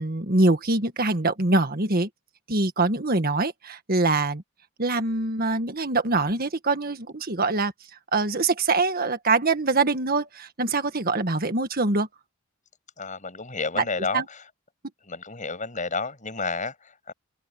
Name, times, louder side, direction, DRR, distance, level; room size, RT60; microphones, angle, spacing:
voice 1, 0.0-2.1 2.5-4.4 4.8-7.7 8.1-12.1 13.8-13.9 14.1-14.2, right 3 dB, 45° right, 1.7 m, -24 dB
voice 2, 13.0-14.4 15.0-17.1, left 4 dB, 35° left, 6.8 m, -31 dB
head